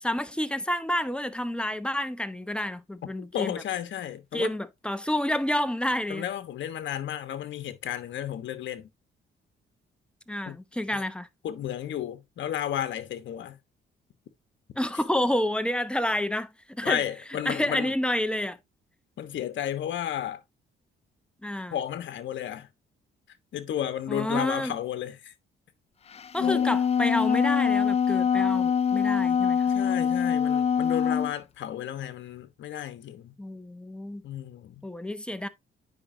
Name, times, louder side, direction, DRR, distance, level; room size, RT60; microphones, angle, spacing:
voice 1, 0.0-3.6 4.3-6.2 10.3-11.3 14.8-17.0 17.4-18.6 21.4-21.8 24.1-24.7 26.3-29.7 33.4-34.2 34.8-35.5, left 1 dB, 5° left, 0.9 m, -29 dB
voice 2, 3.3-4.5 6.1-8.9 10.5-10.6 10.9-11.0 11.4-13.6 16.8-17.9 19.2-20.4 21.7-22.7 23.5-25.3 26.4-26.7 29.7-33.3 34.2-34.8, left 10 dB, 70° left, 1.3 m, -33 dB
Wind instrument woodwind instrument, 26.2-31.3, left 7 dB, 30° left, 0.4 m, -24 dB
9.8 x 5.3 x 2.7 m
cardioid pair, 90°, 20 cm